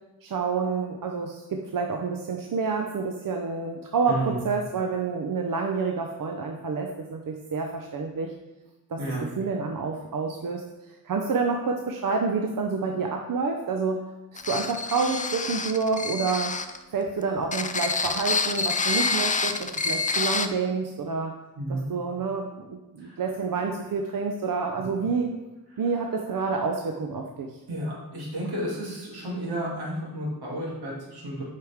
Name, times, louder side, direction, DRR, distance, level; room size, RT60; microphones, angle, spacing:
voice 1, 0.2-8.3 8.9-10.6 11.0-14.0 14.5-16.5 16.9-21.4 21.7-25.3 25.8-27.5, right 4 dB, 60° right, 2 dB, 0.8 m, -28 dB
voice 2, 4.1-4.4 9.0-9.3 21.6-21.9 23.0-23.2 24.8-24.9 27.7-31.4, right 1 dB, 85° right, -5 dB, 2.5 m, -32 dB
sound 1, 14.4-16.8 17.4-20.5, left 4 dB, 20° left, 0.4 m, -27 dB
8.4 x 4.8 x 3.6 m, 1.0 s
cardioid pair, 75°, 38 cm